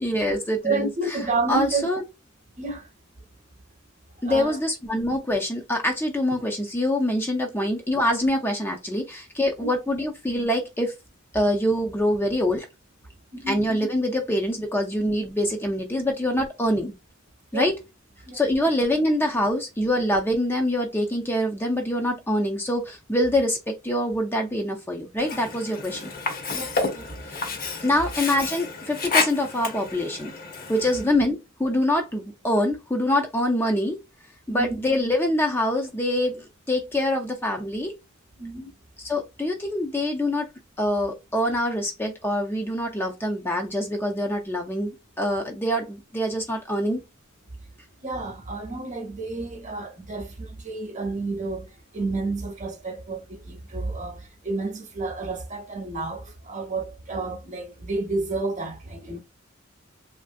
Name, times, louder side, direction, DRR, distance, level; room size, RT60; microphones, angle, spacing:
voice 1, 0.0-1.2 1.5-2.0 4.2-10.9 11.3-12.7 13.5-16.9 17.5-17.7 18.3-26.1 27.3-27.4 27.8-30.3 30.7-34.0 34.5-37.9 39.0-40.5 40.8-47.0, left 1 dB, 10° left, 0.4 m, -25 dB
voice 2, 0.6-1.9 2.6-2.9 4.2-4.6 9.6-9.7 13.3-13.7 17.5-17.7 18.3-18.4 26.5-27.1 34.5-34.8 38.4-38.7 48.0-59.2, right 3 dB, 35° right, 0.8 m, -30 dB
Sink (filling or washing), 25.2-31.1, left 4 dB, 45° left, 0.8 m, -30 dB
3.1 x 2.5 x 2.5 m
head